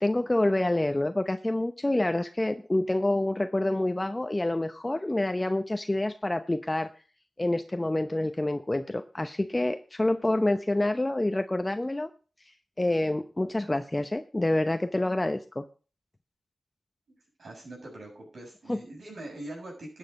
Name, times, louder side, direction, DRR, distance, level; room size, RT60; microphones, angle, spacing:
voice 1, 0.0-6.9 7.4-12.1 12.8-15.6 18.7-18.8, left 1 dB, 20° left, 8 dB, 0.8 m, -27 dB
voice 2, 17.4-20.0, right 1 dB, 75° right, -1 dB, 7.4 m, -42 dB
13.0 x 8.4 x 5.4 m, 0.36 s
cardioid pair, 60°, 0 cm